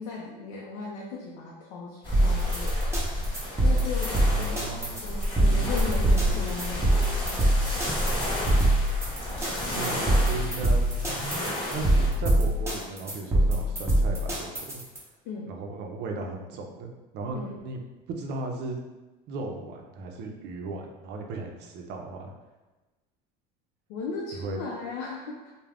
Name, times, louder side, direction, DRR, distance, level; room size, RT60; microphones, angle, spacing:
voice 1, 0.0-3.3 3.6-4.7 5.0-7.9 9.9-10.0 15.2-15.5 17.3-17.6 23.9-25.5, left 4 dB, 80° left, -2 dB, 0.5 m, -37 dB
sound 1, 2.0-12.1, left 1 dB, 25° left, 1.1 m, -31 dB
sound 2, 2.1-15.0, right 1 dB, 15° right, 0.7 m, -24 dB
voice 2, 4.1-5.0 5.4-5.7 6.1-6.4 9.7-11.2 11.7-14.8 15.5-17.8 18.1-18.8 19.3-22.3 24.3-24.6, right 3 dB, 55° right, 2 dB, 0.5 m, -36 dB
2.3 x 2.1 x 3.3 m, 1.1 s
supercardioid pair, 105°, 20 cm